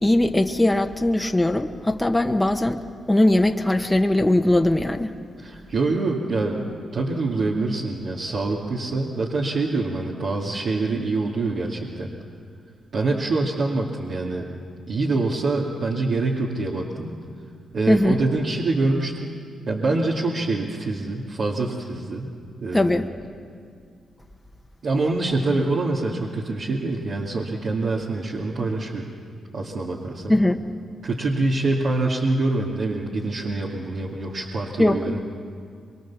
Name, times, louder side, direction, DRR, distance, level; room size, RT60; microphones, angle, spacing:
voice 1, 0.0-2.8 3.1-5.1 17.9-18.2 22.7-23.1 30.3-30.7 34.8-35.1, left 1 dB, 15° left, 5 dB, 1.3 m, -20 dB
voice 2, 5.4-6.6 6.9-12.1 12.9-14.5 14.9-17.1 17.7-19.3 19.7-22.3 22.6-23.0 24.8-29.1 29.5-30.4 31.0-35.2, right 3 dB, 65° right, -4 dB, 2.4 m, -25 dB
24.0 x 23.0 x 7.3 m, 2.3 s
cardioid pair, 65°, 0 cm